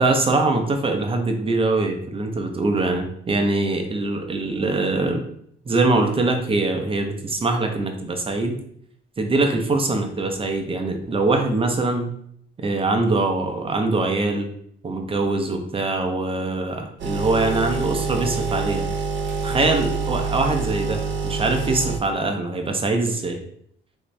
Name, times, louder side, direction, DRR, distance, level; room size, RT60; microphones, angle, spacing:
voice 1, 0.0-5.2 5.7-8.6 9.2-12.1 12.6-14.5 14.8-18.9 19.4-23.4, right 2 dB, 25° right, 4 dB, 0.6 m, -23 dB
sound 1, 17.0-22.0, right 4 dB, 65° right, 0.6 m, -26 dB
2.8 x 2.6 x 3.2 m, 0.68 s
cardioid pair, 90°, 20 cm